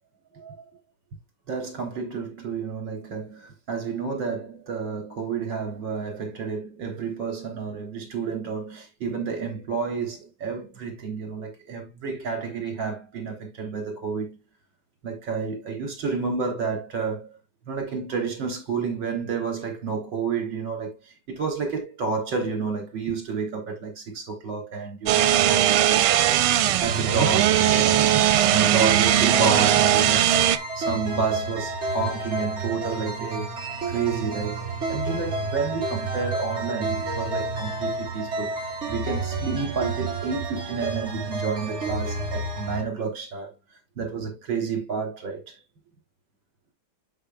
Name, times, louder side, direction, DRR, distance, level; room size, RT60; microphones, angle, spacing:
voice 1, 0.3-0.6 1.5-14.4 15.0-17.4 17.7-28.0 28.3-33.6 33.9-38.5 38.9-43.5 44.0-45.6, right 5 dB, 60° right, 4.0 m, -30 dB
sound 1, 25.1-30.6, right 12 dB, 90° right, 1.6 m, -19 dB
sound 2, 26.8-42.8, right 3 dB, 35° right, 1.9 m, -30 dB
11.5 x 5.2 x 2.3 m
omnidirectional pair, 2.4 m